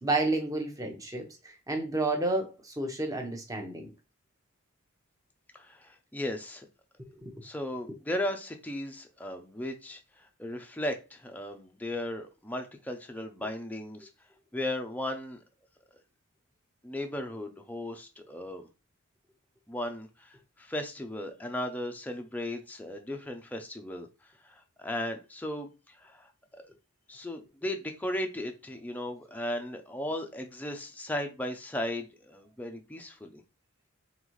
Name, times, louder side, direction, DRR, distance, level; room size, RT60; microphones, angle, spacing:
voice 1, 0.0-3.9 7.0-7.3, right 2 dB, 15° right, 0.8 m, -31 dB
voice 2, 5.5-6.7 7.4-14.1 14.5-15.4 16.8-18.7 19.7-24.1 24.4-26.6 27.1-33.4, left 1 dB, 5° left, 0.5 m, -36 dB
3.9 x 3.5 x 3.1 m
head